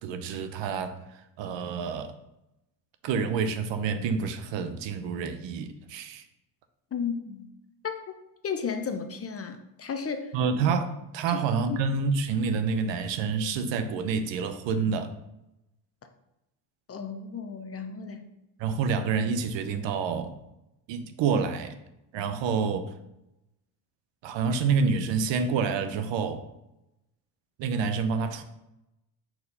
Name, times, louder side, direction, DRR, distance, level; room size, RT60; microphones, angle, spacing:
voice 1, 0.0-2.1 3.0-6.2 10.3-15.1 18.6-20.4 20.9-21.7 22.1-22.9 24.2-26.4 27.6-28.4, right 5 dB, 60° right, 9 dB, 0.8 m, -28 dB
voice 2, 6.9-7.5 7.8-7.9 8.4-10.3 11.3-11.4 11.7-11.8 16.9-18.2, left 6 dB, 30° left, 7 dB, 0.7 m, -33 dB
4.5 x 4.2 x 5.4 m, 0.88 s
supercardioid pair, 80°, 50 cm